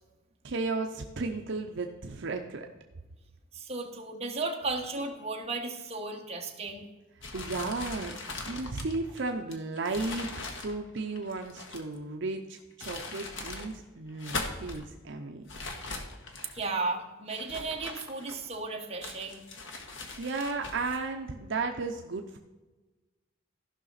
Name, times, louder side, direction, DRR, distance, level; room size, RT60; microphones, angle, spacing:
voice 1, 0.4-2.7 7.3-8.1 8.5-15.4 20.2-22.4, right 3 dB, 65° right, 3 dB, 0.7 m, -34 dB
voice 2, 3.5-6.8 16.5-19.4, right 3 dB, 30° right, 1 dB, 1.3 m, -34 dB
sound 1, 7.2-12.0 12.6-13.7 14.1-14.8 15.5-16.7 17.3-18.6 19.0-21.0, left 3 dB, 65° left, 1.3 m, -40 dB
15.0 x 5.8 x 4.1 m, 1.2 s
head